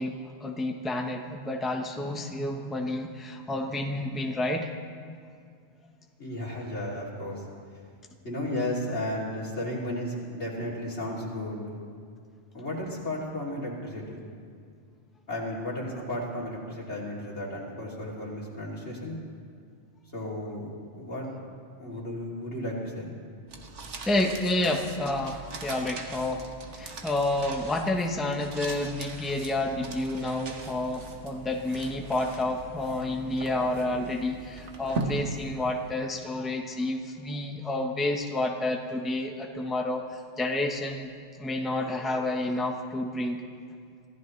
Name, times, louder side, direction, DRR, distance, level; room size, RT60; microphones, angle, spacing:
voice 1, 0.0-4.7 24.0-26.5 26.7-41.1 41.4-43.4, left 2 dB, ahead, 2 dB, 0.9 m, -30 dB
voice 2, 6.2-7.4 8.2-11.7 12.5-14.2 15.3-19.2 20.1-20.7 20.9-21.3 21.8-23.1, left 1 dB, 70° left, -4 dB, 3.3 m, -34 dB
sound 1, 23.5-36.1, right 3 dB, 85° right, 1.5 m, -40 dB
25.5 x 15.0 x 3.2 m, 2.2 s
omnidirectional pair, 1.2 m